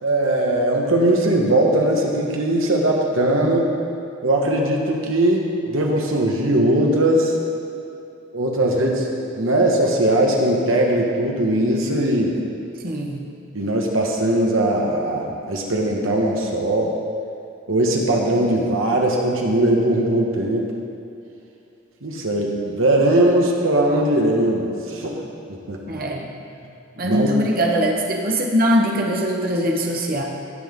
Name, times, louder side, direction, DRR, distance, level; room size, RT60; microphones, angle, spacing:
voice 1, 0.0-3.6 4.2-7.3 8.3-12.4 13.5-16.9 17.7-20.7 22.0-25.1 25.5-26.0 27.0-27.4, right 1 dB, 80° right, -1 dB, 1.5 m, -20 dB
voice 2, 12.8-13.2 25.9-26.3 27.0-30.2, equal, 45° right, 0 dB, 1.1 m, -21 dB
17.5 x 6.0 x 3.7 m, 2.7 s
head